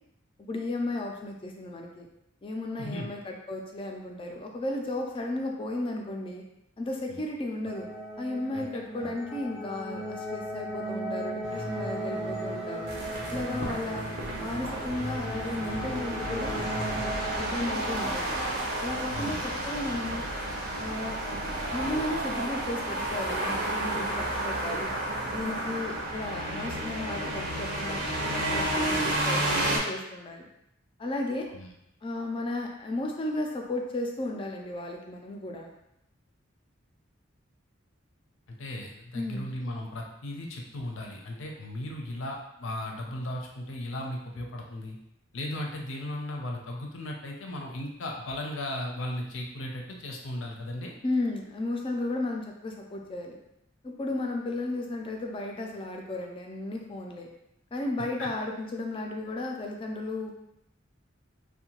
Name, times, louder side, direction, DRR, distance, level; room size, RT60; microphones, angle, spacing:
voice 1, 0.4-2.1 2.4-6.4 6.8-7.9 8.2-12.9 13.3-14.1 14.4-18.4 18.8-20.2 20.8-21.2 21.7-24.9 25.3-30.5 31.0-31.5 32.0-35.7 39.1-39.5 51.0-53.4 53.8-57.3 57.7-60.3, left 2 dB, 25° left, 1 dB, 0.4 m, -34 dB
sound 1, 7.6-17.4, right 1 dB, 10° right, 0.6 m, -37 dB
sound 2, 11.4-17.0, right 1 dB, 85° right, 1.0 m, -39 dB
sound 3, 12.9-29.8, right 1 dB, 55° right, 0.6 m, -31 dB
voice 2, 19.1-19.5 31.5-31.7 38.5-45.0 45.3-50.9 58.2-58.3, left 1 dB, 90° left, 0 dB, 0.5 m, -36 dB
2.7 x 2.2 x 2.9 m, 0.82 s
head